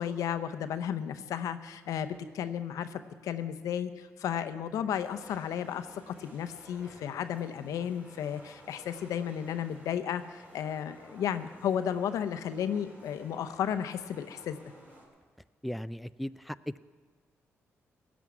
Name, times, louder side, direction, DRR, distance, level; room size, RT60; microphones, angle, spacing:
voice 1, 0.0-14.6, left 9 dB, 85° left, 10 dB, 0.7 m, -33 dB
sound 1, 5.0-15.1, equal, 25° right, 3.9 m, -55 dB
voice 2, 15.6-16.9, equal, ahead, 14 dB, 0.3 m, -37 dB
16.5 x 6.2 x 9.3 m, 1.5 s
cardioid pair, 65°, 6 cm